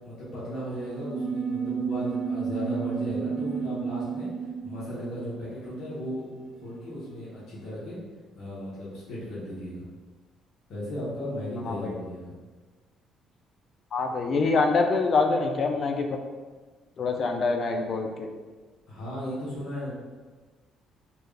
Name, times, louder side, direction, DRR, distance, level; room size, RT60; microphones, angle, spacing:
voice 1, 0.0-4.3 4.6-6.2 6.6-8.0 8.4-9.8 10.7-12.3 18.9-19.9, equal, 60° left, -9 dB, 1.3 m, -36 dB
sound 1, 0.8-6.7, right 6 dB, 25° right, 0.9 m, -32 dB
voice 2, 13.9-16.1 17.0-18.3, left 4 dB, 45° left, 4 dB, 0.4 m, -25 dB
4.4 x 2.5 x 3.3 m, 1.4 s
cardioid pair, 140°, 0 cm